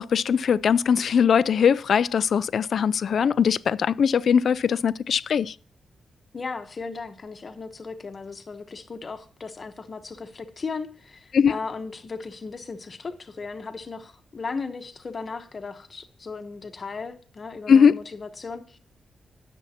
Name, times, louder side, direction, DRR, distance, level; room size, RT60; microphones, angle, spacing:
voice 1, 0.0-5.5 11.3-11.5 17.7-18.0, left 7 dB, 65° left, 0.4 m, -20 dB
voice 2, 6.3-18.8, left 4 dB, 40° left, 1.0 m, -36 dB
17.5 x 7.1 x 2.8 m
wide cardioid pair, 120°, 0 cm